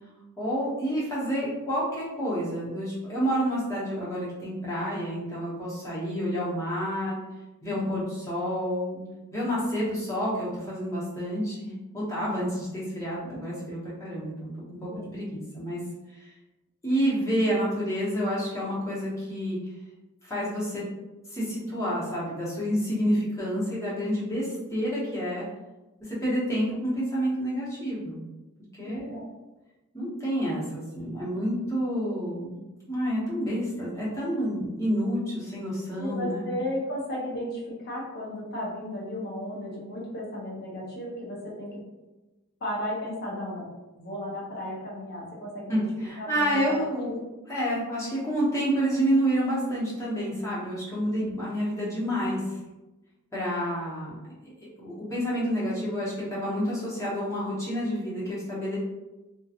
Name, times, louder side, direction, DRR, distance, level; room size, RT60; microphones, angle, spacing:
voice 1, 0.4-7.2 7.6-9.0 9.3-14.5 14.8-15.8 16.2-16.3 16.8-19.6 20.2-20.9 21.3-25.4 26.1-28.2 28.8-29.1 29.9-36.5 45.7-47.2 47.5-52.4 53.3-54.2 54.4-58.8, equal, 15° left, -8 dB, 0.9 m, -29 dB
voice 2, 7.7-8.0 12.1-12.5 13.3-13.4 14.9-15.1 28.8-29.3 36.0-41.8 42.6-43.7 43.9-45.9 46.2-47.1 51.2-51.3, left 1 dB, 45° left, -5 dB, 0.7 m, -35 dB
2.7 x 2.2 x 2.4 m, 1.1 s
head